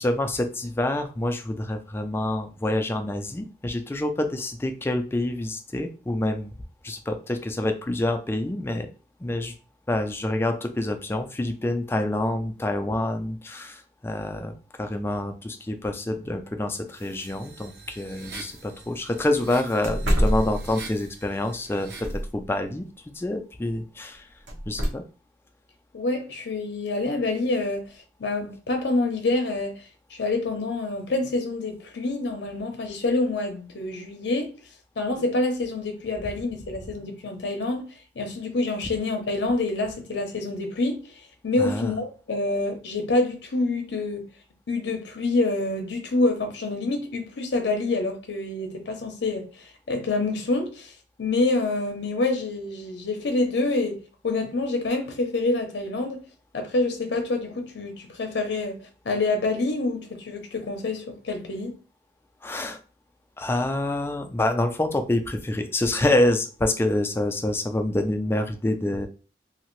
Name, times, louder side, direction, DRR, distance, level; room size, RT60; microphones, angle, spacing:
voice 1, 0.0-6.5 6.8-8.9 9.2-9.5 9.9-24.3 24.7-25.0 41.6-41.9 62.4-62.8 63.4-69.1, left 1 dB, 15° left, 0.3 m, -27 dB
sound 1, 16.9-22.2, right 3 dB, 60° right, 0.7 m, -44 dB
sound 2, 18.2-18.3 18.7-18.8 19.2-19.3 19.8-21.1 21.7-22.5 24.5-24.9, equal, 80° right, 1.0 m, -25 dB
voice 2, 25.9-27.9 28.2-34.5 35.0-37.8 38.2-44.2 44.7-50.9 51.2-54.0 54.2-56.2 56.5-58.8 59.0-61.7, left 2 dB, 75° left, 0.6 m, -27 dB
2.7 x 2.5 x 3.0 m
head